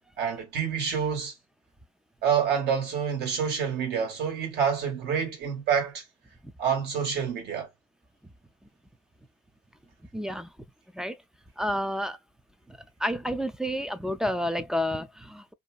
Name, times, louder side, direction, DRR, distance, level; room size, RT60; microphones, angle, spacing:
voice 1, 0.2-1.3 2.2-6.0 6.6-7.7, right 7 dB, 75° right, 1.4 m, -27 dB
voice 2, 10.1-10.5 10.9-11.2 11.6-12.2 12.7-15.5, equal, 5° right, 0.3 m, -30 dB
2.7 x 2.3 x 2.3 m
cardioid pair, 110°, 17 cm